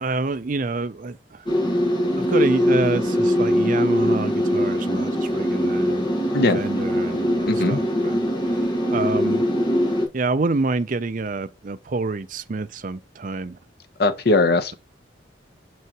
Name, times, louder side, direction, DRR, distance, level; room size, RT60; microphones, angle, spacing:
voice 1, 0.0-1.4 2.2-6.0 6.5-8.2 8.9-9.4 10.1-13.6, right 3 dB, 45° right, 0.5 m, -27 dB
sound 1, 1.5-10.1, equal, 25° left, 1.6 m, -22 dB
voice 2, 7.4-7.8 14.0-14.7, left 2 dB, 55° left, 0.8 m, -19 dB
6.2 x 5.7 x 3.0 m
head